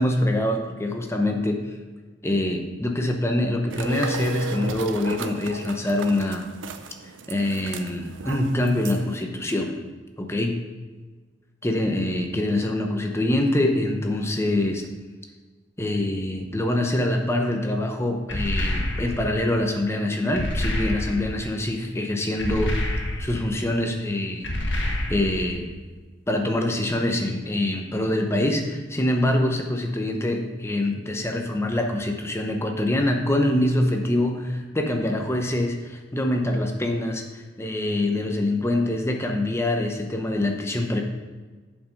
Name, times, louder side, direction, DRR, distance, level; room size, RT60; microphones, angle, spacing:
voice 1, 0.0-1.6 2.2-6.5 7.3-9.8 10.2-10.6 11.6-14.9 15.8-22.7 23.2-25.7 26.3-41.0, left 1 dB, 15° left, 3 dB, 0.9 m, -25 dB
sound 1, 3.7-9.2, right 3 dB, 85° right, 0.5 m, -35 dB
sound 2, 18.3-19.4 20.3-21.4 22.4-23.5 24.4-25.5, left 1 dB, 75° left, 1.5 m, -27 dB
7.6 x 5.5 x 5.3 m, 1.3 s
head